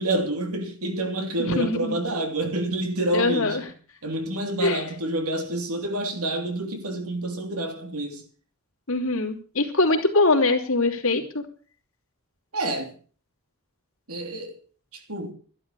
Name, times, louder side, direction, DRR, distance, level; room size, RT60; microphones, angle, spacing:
voice 1, 0.0-3.7 4.0-8.2 12.5-12.9 14.1-14.6 15.1-15.3, right 1 dB, 90° right, 3.1 m, -28 dB
voice 2, 1.4-2.0 3.1-3.6 4.6-4.8 8.9-11.4, left 2 dB, 65° left, 3.1 m, -23 dB
12.5 x 11.5 x 6.8 m
head